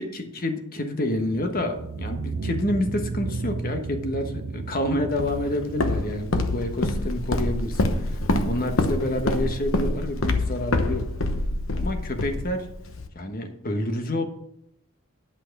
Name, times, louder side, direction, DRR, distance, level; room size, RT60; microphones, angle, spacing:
voice 1, 0.0-8.2 8.4-11.1 11.7-12.7 13.1-14.2, left 1 dB, 40° left, 5 dB, 1.3 m, -28 dB
sound 1, 1.2-9.4, right 3 dB, 70° right, 0.7 m, -35 dB
Walk footsteps, 5.2-13.1, left 2 dB, 65° left, 1.0 m, -26 dB
10.5 x 5.9 x 6.0 m, 0.76 s
head